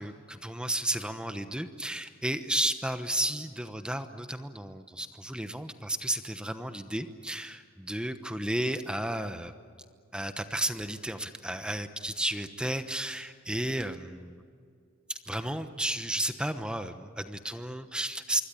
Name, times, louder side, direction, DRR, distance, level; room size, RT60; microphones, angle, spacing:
voice 1, 0.0-9.5 10.1-14.4 15.1-18.4, right 1 dB, 5° right, 9 dB, 1.0 m, -33 dB
26.0 x 23.5 x 8.6 m, 2.2 s
head